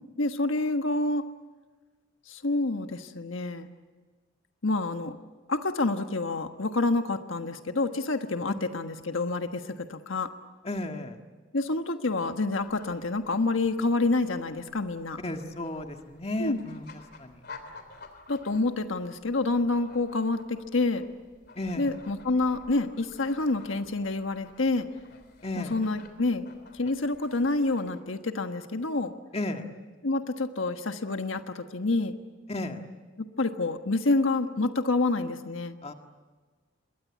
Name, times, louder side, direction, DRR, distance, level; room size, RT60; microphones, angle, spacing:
voice 1, 0.2-1.2 2.3-3.7 4.6-5.2 5.5-10.3 11.5-15.2 16.4-16.6 18.3-21.0 21.8-24.9 25.5-26.5 26.7-29.1 30.0-32.1 33.2-35.8, left 2 dB, 90° left, 7 dB, 1.3 m, -28 dB
voice 2, 10.6-11.2 15.2-16.9 17.2-17.4 21.6-21.9 25.4-25.8 29.3-29.7 32.5-32.8 35.8-35.9, left 1 dB, 30° left, 5 dB, 1.8 m, -33 dB
sound 1, 12.6-28.0, left 3 dB, 55° left, 3.3 m, -52 dB
27.0 x 22.0 x 8.4 m, 1.4 s
head